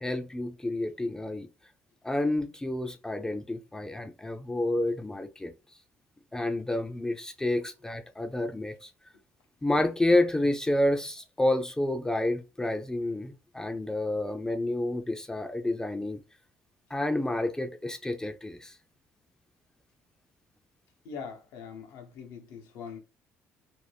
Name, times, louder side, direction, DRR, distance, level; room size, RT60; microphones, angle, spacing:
voice 1, 0.0-1.5 2.0-5.5 6.3-8.9 9.6-16.2 16.9-18.8, left 1 dB, 10° left, 0.4 m, -29 dB
voice 2, 21.0-23.0, left 6 dB, 85° left, 0.7 m, -42 dB
2.5 x 2.2 x 3.3 m
cardioid pair, 85°, 5 cm